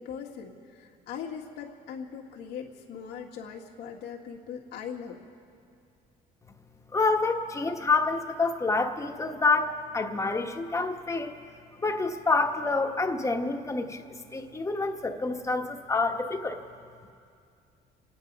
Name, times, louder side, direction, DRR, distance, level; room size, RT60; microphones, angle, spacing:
voice 1, 0.0-5.2, left 7 dB, 85° left, -1 dB, 1.8 m, -40 dB
voice 2, 6.9-11.4 11.8-16.6, left 3 dB, 15° left, 4 dB, 1.3 m, -27 dB
28.5 x 9.5 x 5.3 m, 2.3 s
cardioid pair, 110°, 17 cm